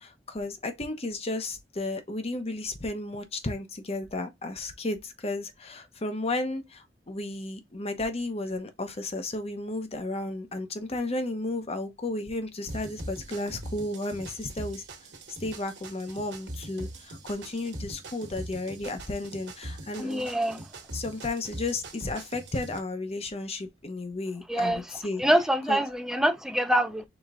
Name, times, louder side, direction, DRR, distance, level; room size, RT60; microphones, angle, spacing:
voice 1, 0.0-14.8 15.4-20.3 20.9-25.2 25.7-25.8, left 2 dB, 35° left, 0.8 m, -33 dB
sound 1, 12.7-22.8, right 1 dB, 70° right, 1.3 m, -42 dB
voice 2, 20.0-20.6 24.5-24.8 25.2-27.0, right 1 dB, 5° right, 0.5 m, -25 dB
4.9 x 3.8 x 2.5 m
head